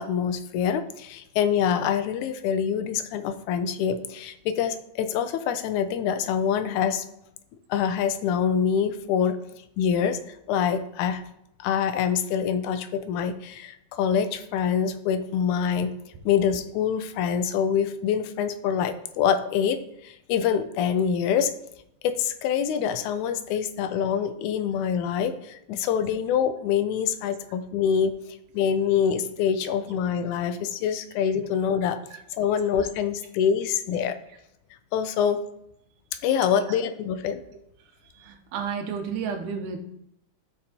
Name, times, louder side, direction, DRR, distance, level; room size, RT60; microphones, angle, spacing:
voice 1, 0.0-7.0 7.7-9.4 9.8-11.2 11.6-15.9 16.3-21.5 22.0-28.2 28.5-32.0 32.3-34.2 34.9-35.4 36.2-37.4, left 8 dB, 80° left, 10 dB, 2.0 m, -25 dB
voice 2, 38.1-39.8, right 6 dB, 90° right, 5 dB, 2.4 m, -32 dB
13.5 x 5.3 x 2.9 m, 0.79 s
omnidirectional pair, 3.5 m